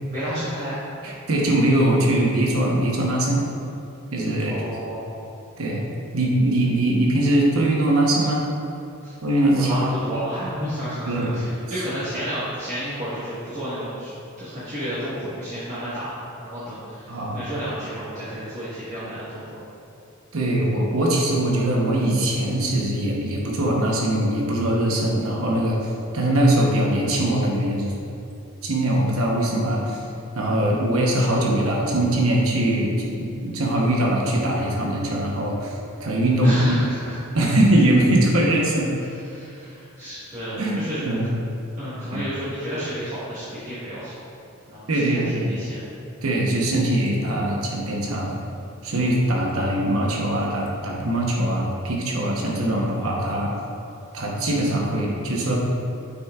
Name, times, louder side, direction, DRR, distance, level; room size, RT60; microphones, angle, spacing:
voice 1, 0.1-0.8 4.4-5.1 9.0-9.1 9.5-14.1 14.4-16.1 16.4-19.6 36.4-37.3 39.3-41.0 41.8-44.2 44.7-44.9 45.1-45.2 45.5-45.8, equal, 35° right, -13 dB, 1.5 m, -31 dB
voice 2, 1.0-3.4 4.1-4.6 5.6-5.9 6.1-8.4 9.2-9.7 11.1-11.4 17.1-17.5 20.3-25.8 26.1-27.9 28.6-30.0 30.3-32.9 33.2-35.7 36.0-36.8 37.3-38.9 40.6-41.3 42.1-42.2 44.9-45.5 46.2-48.4 48.8-53.5 54.1-55.6, right 1 dB, 80° right, -2 dB, 1.0 m, -21 dB
8.1 x 5.5 x 2.4 m, 2.6 s
head